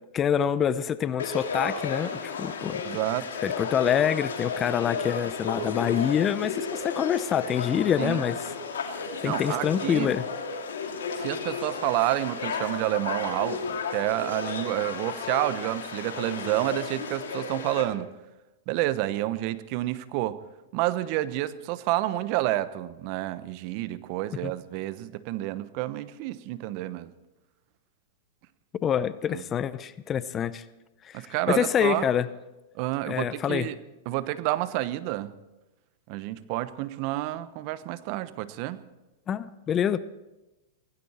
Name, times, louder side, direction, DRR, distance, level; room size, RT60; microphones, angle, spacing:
voice 1, 0.1-2.8 3.4-8.4 9.2-10.2 24.4-24.5 28.8-30.6 31.0-32.3 33.1-33.7 39.3-40.0, left 8 dB, 25° left, 16 dB, 0.7 m, -26 dB
Conversation / Crowd, 1.2-17.8, left 5 dB, 85° left, 2.7 m, -33 dB
voice 2, 2.8-3.3 8.0-8.2 9.2-10.1 11.2-18.1 18.7-20.4 20.7-27.1 29.3-29.4 31.1-32.0 32.7-33.8 34.1-35.3 36.1-38.8, right 16 dB, 50° right, 14 dB, 0.9 m, -29 dB
17.5 x 16.0 x 4.4 m, 1.0 s
hypercardioid pair, 120°, 0 cm